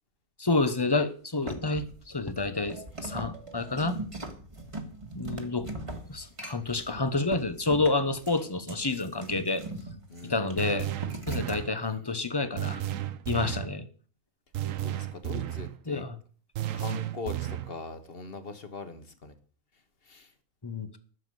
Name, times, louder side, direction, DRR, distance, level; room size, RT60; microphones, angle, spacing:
voice 1, 0.4-4.0 5.1-5.7 6.1-9.6 10.2-10.9 11.3-12.8 13.3-13.9 15.9-16.2 20.6-21.0, left 3 dB, 20° left, 11 dB, 0.9 m, -29 dB
sound 1, 1.5-11.7, right 1 dB, 20° right, 1.7 m, -40 dB
voice 2, 10.1-10.7 14.8-16.0 16.7-19.3 20.1-20.3, left 4 dB, 45° left, 9 dB, 1.7 m, -41 dB
sound 2, 10.6-11.8 12.6-13.7 14.5-15.8 16.6-17.8, right 12 dB, 70° right, 1.1 m, -33 dB
11.5 x 7.2 x 7.8 m, 0.43 s
omnidirectional pair, 1.5 m